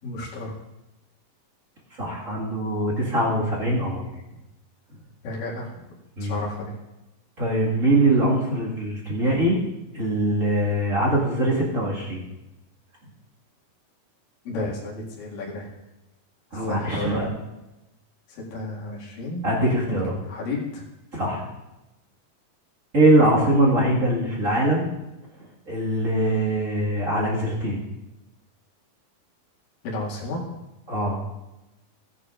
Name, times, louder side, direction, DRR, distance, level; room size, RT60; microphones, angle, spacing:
voice 1, 0.0-0.6 5.2-5.7 6.2-6.7 14.5-15.7 16.5-17.3 18.3-19.5 19.9-20.0 20.3-20.8 29.8-30.4, left 2 dB, 65° left, -5 dB, 3.8 m, -32 dB
voice 2, 2.0-4.0 6.2-6.4 7.4-9.6 9.9-12.2 16.5-17.3 19.4-20.2 21.1-21.5 22.9-24.9 25.7-27.8 30.9-31.2, right 1 dB, 30° right, -5 dB, 1.5 m, -22 dB
17.5 x 9.8 x 2.5 m, 0.98 s
omnidirectional pair, 4.2 m